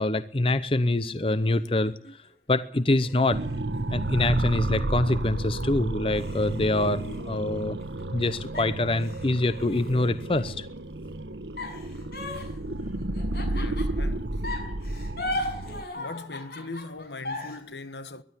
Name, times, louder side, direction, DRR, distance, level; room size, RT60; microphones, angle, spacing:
voice 1, 0.0-1.9 2.5-3.4 3.9-7.8 8.1-10.7, left 2 dB, 30° left, 0.7 m, -25 dB
sound 1, 0.9-2.3 3.0-5.2 5.6-5.7 6.1-8.2 8.5-10.5 11.6-14.1 14.4-17.6, left 1 dB, 60° left, 6.6 m, -38 dB
sound 2, 3.3-15.8, right 1 dB, 85° right, 1.2 m, -31 dB
voice 2, 13.4-14.5 15.9-18.2, left 3 dB, 85° left, 1.4 m, -40 dB
21.5 x 12.0 x 10.0 m
head